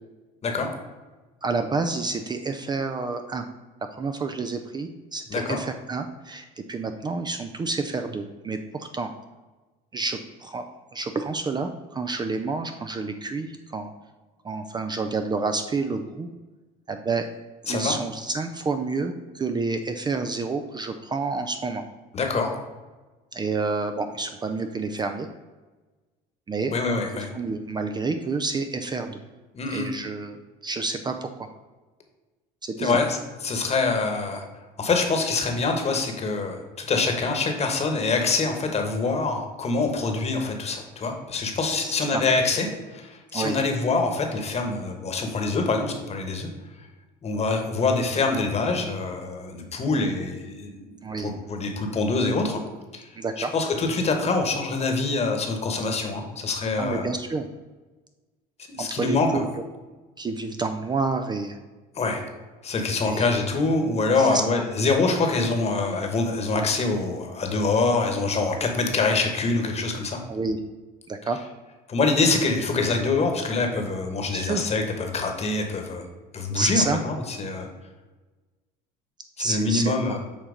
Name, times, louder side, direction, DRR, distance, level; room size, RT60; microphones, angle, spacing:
voice 1, 1.4-3.4 3.9-9.1 9.9-13.9 14.4-16.3 16.9-17.3 17.7-21.8 23.3-25.3 26.5-26.7 27.3-29.2 29.7-31.5 32.6-33.0 41.8-42.2 43.3-43.6 51.0-51.3 53.2-53.5 56.8-57.5 58.8-59.4 60.2-61.6 63.0-63.3 64.2-64.6 70.3-70.6 71.1-71.4 74.3-74.6 76.6-77.0 79.4-80.2, right 3 dB, 25° right, 6 dB, 0.4 m, -29 dB
voice 2, 5.3-5.6 17.7-17.9 22.1-22.5 26.7-27.3 29.5-29.9 32.8-33.2 33.4-34.4 34.8-46.5 47.2-50.9 51.2-52.6 52.9-53.1 53.4-57.1 58.7-59.4 62.0-62.2 62.6-70.2 71.9-76.0 76.3-77.7 79.4-80.2, left 3 dB, 35° left, 4 dB, 1.2 m, -25 dB
7.2 x 2.9 x 5.1 m, 1.2 s
supercardioid pair, 90°, 18 cm